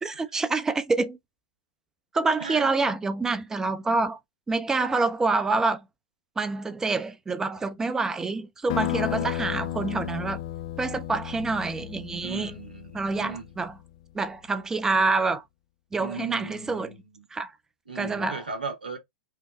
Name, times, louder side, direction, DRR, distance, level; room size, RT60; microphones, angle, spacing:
voice 1, 0.0-1.2 2.1-4.2 4.5-5.8 6.4-10.4 10.8-12.6 12.9-13.8 14.1-15.4 15.9-16.9 17.3-17.5 18.0-18.4, right 3 dB, 10° right, 0.6 m, -27 dB
sound 1, 8.7-13.8, left 14 dB, 50° left, 0.3 m, -33 dB
voice 2, 12.2-13.5 16.0-17.3 17.9-19.0, right 4 dB, 75° right, 1.1 m, -37 dB
5.6 x 2.2 x 3.0 m
figure-of-eight pair, 95°, 5 cm